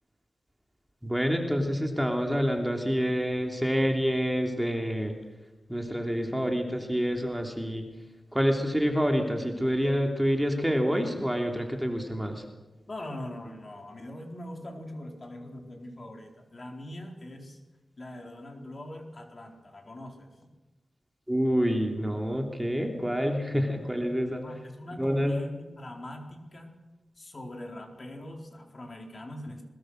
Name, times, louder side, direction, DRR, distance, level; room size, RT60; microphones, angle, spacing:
voice 1, 1.0-5.1 5.7-7.9 8.3-12.4 21.3-24.4 25.0-25.3, equal, 5° right, 2 dB, 3.1 m, -27 dB
voice 2, 12.9-17.6 18.0-20.3 24.4-26.7 27.2-29.7, left 1 dB, 40° left, 2 dB, 4.2 m, -42 dB
22.0 x 21.0 x 6.5 m, 1.2 s
wide cardioid pair, 75°, 0 cm